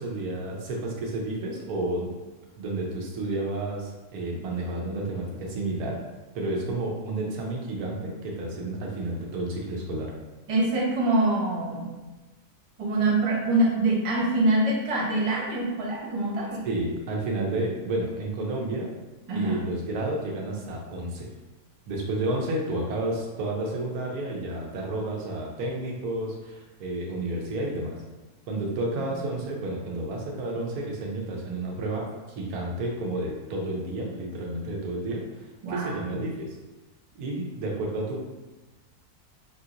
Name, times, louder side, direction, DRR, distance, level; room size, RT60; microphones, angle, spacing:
voice 1, 0.0-2.1 2.6-6.0 6.3-10.1 16.6-18.9 19.3-21.3 21.9-28.0 28.5-32.1 32.3-36.5 37.1-38.2, right 2 dB, 75° right, -1 dB, 1.1 m, -31 dB
voice 2, 10.5-11.9 12.8-16.6 19.3-19.6 28.9-29.1 35.6-36.3, right 2 dB, 60° right, -5 dB, 0.3 m, -25 dB
2.9 x 2.8 x 2.4 m, 1.1 s
omnidirectional pair, 1.6 m